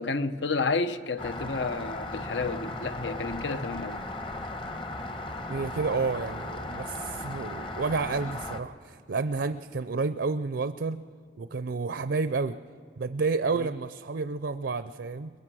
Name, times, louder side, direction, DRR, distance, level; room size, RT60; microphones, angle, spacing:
voice 1, 0.0-4.0 13.5-13.7, left 4 dB, 75° left, 0.8 m, -31 dB
Rain, 1.2-8.6, left 2 dB, 30° left, 1.1 m, -36 dB
voice 2, 5.5-11.0 11.4-12.6 13.0-15.3, right 4 dB, 65° right, 0.5 m, -30 dB
23.0 x 21.5 x 6.2 m
head